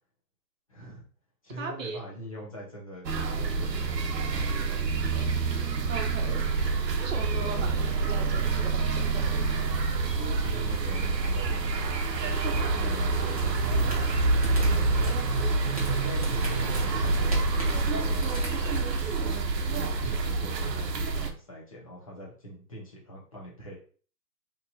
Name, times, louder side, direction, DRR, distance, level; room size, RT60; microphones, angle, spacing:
voice 1, 0.7-1.1 1.4-3.1 3.4-5.5 6.3-6.5 10.2-15.0 15.7-18.7 19.5-23.7, equal, 20° left, -4 dB, 0.6 m, -43 dB
voice 2, 1.6-2.0 5.9-6.4 7.0-9.4, right 4 dB, 55° right, 3 dB, 1.0 m, -38 dB
sound 1, 3.0-21.3, right 3 dB, 80° right, 0.8 m, -27 dB
sound 2, 13.1-19.2, right 1 dB, 25° right, 0.4 m, -42 dB
3.0 x 2.5 x 3.9 m, 0.41 s
hypercardioid pair, 160°, 49 cm